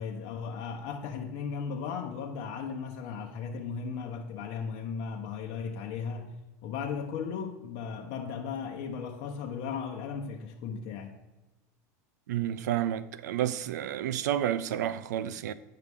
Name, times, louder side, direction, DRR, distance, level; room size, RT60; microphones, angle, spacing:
voice 1, 0.0-11.2, left 6 dB, 60° left, 0.8 m, -36 dB
voice 2, 12.3-15.5, right 11 dB, 80° right, 0.4 m, -30 dB
9.4 x 5.7 x 3.5 m
hypercardioid pair, 100°, 9 cm